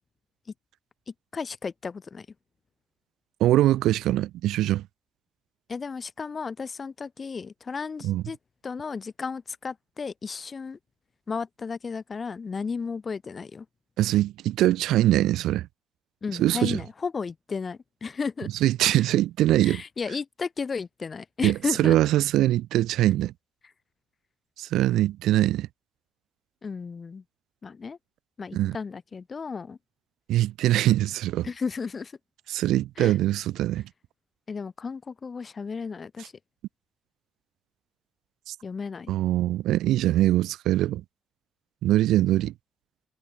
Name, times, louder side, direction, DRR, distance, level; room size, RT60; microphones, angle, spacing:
voice 1, 1.1-2.3 5.7-8.4 8.6-10.8 11.3-13.7 16.2-18.5 18.9-19.0 19.6-22.0 26.6-27.2 27.6-28.0 28.4-29.8 31.4-32.2 33.0-33.2 34.5-36.3 38.6-39.1, left 5 dB, 35° left, 5.6 m, -34 dB
voice 2, 3.4-4.9 8.0-8.2 14.0-15.7 16.4-16.8 18.6-19.8 21.4-23.3 24.6-25.7 28.5-28.8 30.3-31.5 32.5-33.8 38.5-38.6 39.1-41.0 41.8-42.5, right 14 dB, 85° right, 2.2 m, -22 dB
cardioid pair, 90°, 0 cm